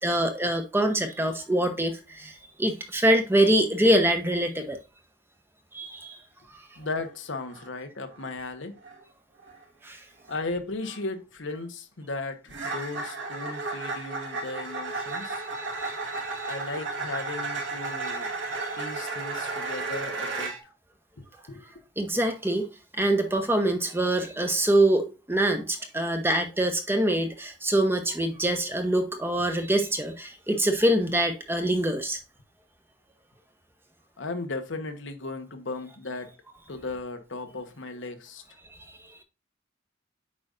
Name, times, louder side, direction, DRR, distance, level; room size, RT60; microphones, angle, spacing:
voice 1, 0.0-4.8 5.7-6.2 9.8-10.0 15.1-16.5 17.9-18.2 19.5-19.6 22.0-22.7 22.9-32.2, right 1 dB, 10° right, 1.0 m, -25 dB
voice 2, 6.8-8.8 10.3-15.4 16.5-18.3 18.8-20.5 21.5-21.6 34.2-36.3 36.7-38.4, left 3 dB, 80° left, 1.1 m, -36 dB
sound 1, 6.8-7.1 7.4-7.7 8.1-8.4 8.8-9.0 9.4-9.6 10.3-10.4 10.8-11.0 12.5-20.6, right 3 dB, 75° right, 1.6 m, -34 dB
8.5 x 5.2 x 2.5 m
head